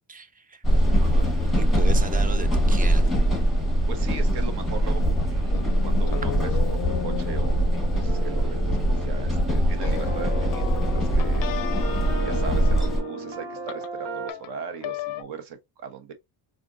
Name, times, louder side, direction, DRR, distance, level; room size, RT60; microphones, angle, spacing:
voice 1, 0.1-0.6 1.6-3.1, right 4 dB, 20° right, 0.3 m, -36 dB
sound 1, 0.6-13.0, equal, ahead, 1.1 m, -22 dB
voice 2, 0.9-1.3 3.4-3.6 3.9-6.5 6.9-11.5 12.1-16.1, right 7 dB, 60° right, 1.1 m, -39 dB
sound 2, 5.5-15.2, left 12 dB, 50° left, 0.4 m, -36 dB
sound 3, 8.0-14.3, right 4 dB, 85° right, 1.3 m, -36 dB
4.2 x 2.6 x 2.5 m
cardioid pair, 125°, 46 cm